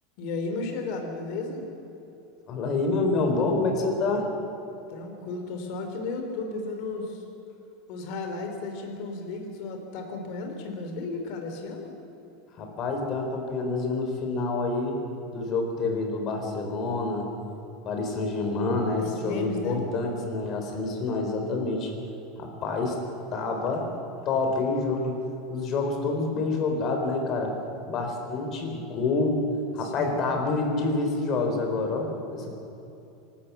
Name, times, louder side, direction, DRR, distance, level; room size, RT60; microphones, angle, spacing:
voice 1, 0.2-1.6 4.9-7.2 7.9-11.9 19.0-19.8 29.8-30.3, left 3 dB, 55° left, 4 dB, 3.4 m, -34 dB
voice 2, 2.5-4.3 12.6-15.0 15.3-17.3 17.9-21.9 22.4-23.0 23.3-23.9 24.2-25.2 25.5-27.6 27.8-29.4 29.7-32.6, left 3 dB, 35° left, 3 dB, 4.2 m, -27 dB
26.0 x 13.0 x 8.5 m, 2.9 s
supercardioid pair, 150°, 0 cm